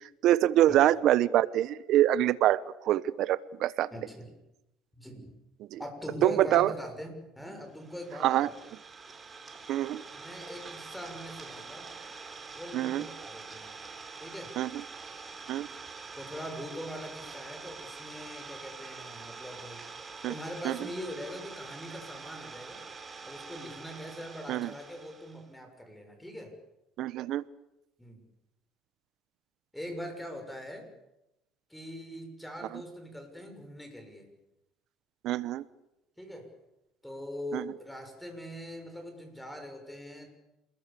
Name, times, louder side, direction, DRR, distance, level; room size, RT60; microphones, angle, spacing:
voice 1, 0.2-3.9 5.7-5.8 6.2-6.7 8.2-8.5 9.7-10.0 12.7-13.1 14.6-14.8 15.5-15.7 20.2-20.3 20.6-20.8 24.5-24.7 27.0-27.4 35.2-35.6 37.5-37.7, right 13 dB, 65° right, 17 dB, 1.1 m, -25 dB
voice 2, 3.9-4.3 5.0-5.4 5.8-8.5 10.1-11.9 12.5-13.8 14.2-14.6 16.1-19.8 20.3-22.8 23.2-26.5 28.0-28.2 29.7-30.9 31.7-34.3 36.2-36.5 37.0-40.3, equal, 5° left, 5 dB, 6.6 m, -42 dB
Idling, 7.7-25.5, right 4 dB, 25° right, 3.9 m, -45 dB
28.0 x 21.5 x 7.0 m, 0.90 s
cardioid pair, 105°, 0 cm